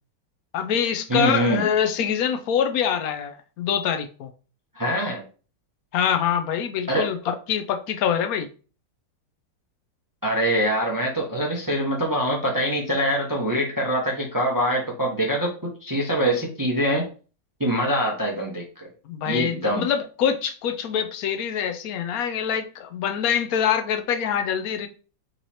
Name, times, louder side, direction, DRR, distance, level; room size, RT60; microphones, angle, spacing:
voice 1, 0.5-4.3 5.9-8.5 19.1-24.9, left 8 dB, 70° left, 0.9 m, -25 dB
voice 2, 1.1-1.7 4.7-5.2 6.9-7.1 10.2-17.1 17.6-18.9 19.2-19.9, equal, 20° right, 0.5 m, -24 dB
4.0 x 3.1 x 4.2 m
omnidirectional pair, 2.0 m